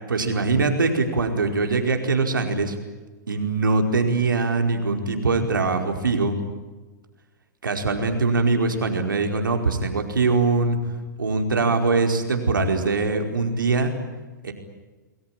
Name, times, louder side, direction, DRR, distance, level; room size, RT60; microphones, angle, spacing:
voice 1, 0.1-2.7 3.3-6.3 7.6-10.8 11.2-13.9 14.4-14.5, right 3 dB, 85° right, 4 dB, 4.8 m, -22 dB
29.0 x 21.0 x 9.1 m, 1.2 s
hypercardioid pair, 115°, 11 cm